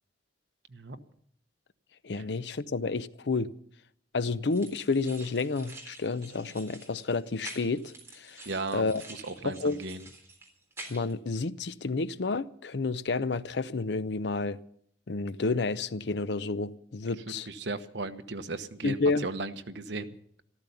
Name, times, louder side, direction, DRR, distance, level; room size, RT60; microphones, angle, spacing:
voice 1, 2.0-3.5 4.1-8.4 8.7-9.0 9.4-9.8 10.9-14.6 15.1-17.5 18.8-19.3, left 3 dB, 65° left, 0.6 m, -30 dB
sound 1, 4.5-11.1, right 2 dB, 15° right, 3.7 m, -48 dB
voice 2, 8.4-8.8 9.1-10.0 17.5-20.2, right 3 dB, 70° right, 1.1 m, -36 dB
14.0 x 13.5 x 6.9 m
head